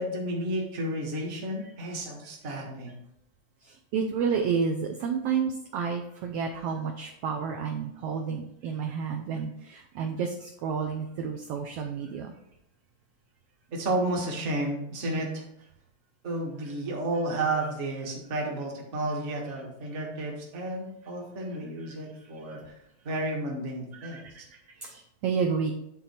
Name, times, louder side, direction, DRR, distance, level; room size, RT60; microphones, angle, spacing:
voice 1, 0.0-3.0 13.7-15.4 16.2-22.8 23.0-24.2, right 1 dB, 35° right, -1 dB, 1.2 m, -32 dB
voice 2, 3.9-12.3 15.0-15.2 24.0-24.2 24.8-25.7, right 6 dB, 75° right, 3 dB, 1.4 m, -30 dB
9.9 x 3.9 x 4.3 m, 0.78 s
omnidirectional pair, 3.4 m